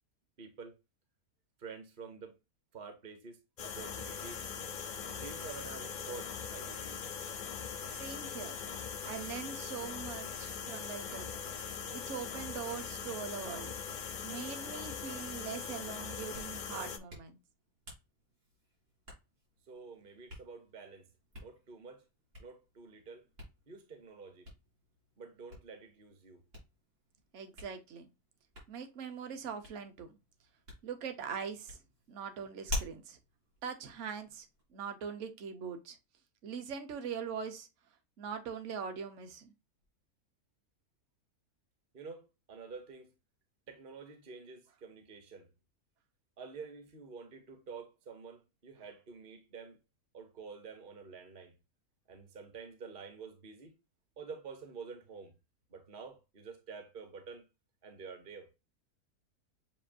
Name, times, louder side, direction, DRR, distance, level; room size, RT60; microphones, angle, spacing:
voice 1, 0.4-0.7 1.6-2.4 2.7-4.4 5.1-7.0 19.6-21.1 21.4-22.0 22.4-23.3 23.7-24.5 25.2-26.4 41.9-43.1 43.7-45.5 46.4-49.8 50.1-51.5 52.1-53.7 54.2-55.3 55.7-57.4 57.8-58.5, right 5 dB, 40° right, 0.9 m, -49 dB
sound 1, 3.6-17.0, left 6 dB, 50° left, 0.5 m, -41 dB
voice 2, 8.0-8.6 9.1-11.5 11.9-13.7 14.2-17.4 27.3-28.1 28.7-30.2 30.8-31.8 32.1-33.2 33.6-34.5 34.7-36.0 36.4-37.7 38.2-39.5, right 6 dB, 55° right, 1.1 m, -42 dB
Hands, 16.1-34.6, left 1 dB, 85° right, 3.3 m, -49 dB
7.5 x 2.6 x 2.5 m
omnidirectional pair, 1.6 m